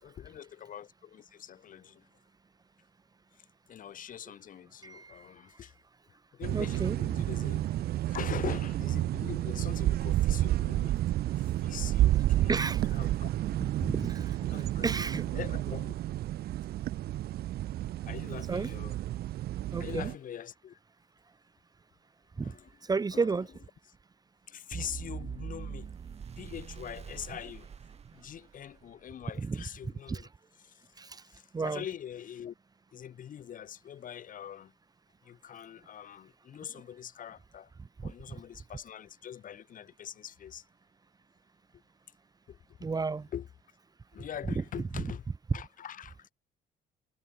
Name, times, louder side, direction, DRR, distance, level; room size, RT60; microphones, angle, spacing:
voice 1, 0.0-2.1 3.3-5.7 6.3-7.7 8.1-11.0 11.4-13.6 14.5-14.9 15.3-16.0 18.0-19.0 19.8-20.8 22.4-22.7 23.1-23.4 24.5-25.9 26.4-27.7 28.1-30.3 30.6-30.9 31.2-32.5 32.9-34.7 35.2-37.7 38.0-40.6 42.5-42.9 43.3-43.5 44.1-45.2 45.5-46.3, left 9 dB, 50° left, 6.2 m, -43 dB
voice 2, 4.8-5.3 6.5-7.2 12.4-12.8 13.6-14.4 14.8-15.3 18.5-18.7 19.7-20.1 22.4-22.5 22.8-23.5 29.4-29.6 30.1-30.2 31.0-31.2 31.5-31.8 38.0-38.1 42.8-43.3 44.5-44.6, right 4 dB, 25° right, 1.3 m, -32 dB
sound 1, 6.4-20.2, right 14 dB, 65° right, 1.2 m, -30 dB
sound 2, 24.7-28.8, right 7 dB, 40° right, 4.8 m, -43 dB
cardioid pair, 110°, 17 cm